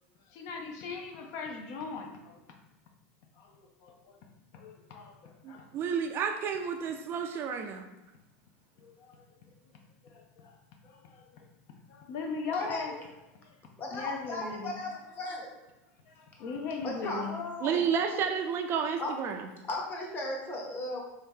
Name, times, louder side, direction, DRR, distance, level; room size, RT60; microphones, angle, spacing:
voice 1, 0.3-2.4 3.4-3.5 3.8-4.1 4.5-5.7 8.8-9.2 10.0-10.5 10.8-11.4 11.9-12.9 13.9-14.7 16.1-17.3, left 4 dB, 55° left, 2 dB, 0.6 m, -39 dB
voice 2, 5.4-7.9 17.6-19.5, right 7 dB, 40° right, 5 dB, 0.4 m, -31 dB
voice 3, 12.5-13.0 13.8-15.5 16.8-17.9 19.0-19.1 19.7-21.0, left 2 dB, 30° left, -1 dB, 1.0 m, -36 dB
3.5 x 2.8 x 3.6 m, 0.97 s
supercardioid pair, 125°, 6 cm